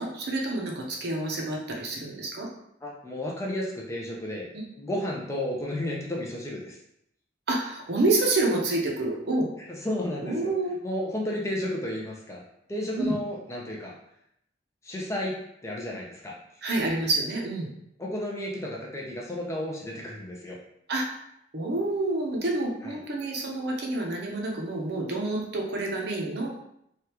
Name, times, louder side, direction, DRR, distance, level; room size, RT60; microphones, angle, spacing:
voice 1, 0.0-2.5 4.5-4.6 7.5-9.5 10.2-10.7 13.0-13.2 16.6-17.7 20.9-21.1 21.5-26.5, right 2 dB, 60° right, -1 dB, 0.6 m, -28 dB
voice 2, 2.8-4.5 4.8-6.8 9.7-10.5 10.8-12.4 12.7-13.9 14.8-15.4 15.6-16.3 18.0-20.6 22.8-22.9, left 1 dB, 15° left, -2 dB, 0.5 m, -32 dB
3.4 x 2.3 x 2.8 m, 0.75 s
head